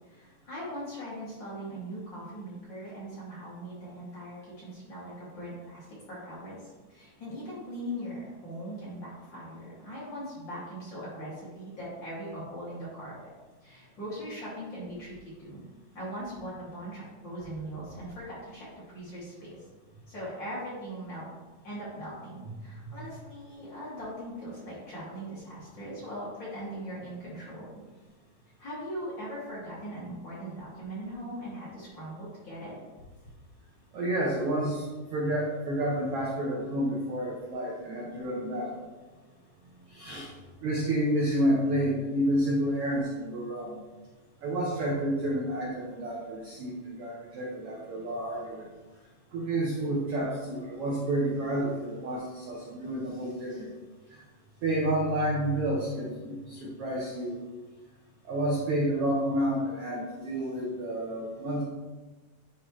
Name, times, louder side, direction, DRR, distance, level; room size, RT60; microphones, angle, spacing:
voice 1, 0.1-13.1 13.6-15.6 15.9-19.6 20.1-21.3 21.6-27.8 28.6-32.7, equal, 35° left, -9 dB, 2.6 m, -40 dB
voice 2, 33.9-34.9 35.1-38.7 39.9-40.3 40.6-43.8 44.4-48.6 49.3-53.7 54.6-57.4 58.2-61.6, right 1 dB, 75° right, -3 dB, 1.4 m, -30 dB
10.5 x 4.4 x 3.2 m, 1.2 s
omnidirectional pair, 4.1 m